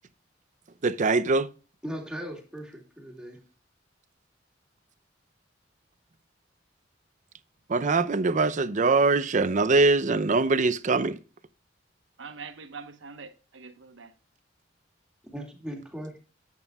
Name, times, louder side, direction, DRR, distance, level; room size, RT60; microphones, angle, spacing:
voice 1, 0.8-1.5 7.7-11.2, right 3 dB, 40° right, 0.5 m, -23 dB
voice 2, 1.8-3.4 15.3-16.2, equal, 5° right, 2.2 m, -38 dB
voice 3, 12.2-14.1, right 5 dB, 85° right, 1.1 m, -43 dB
11.0 x 9.1 x 2.3 m
head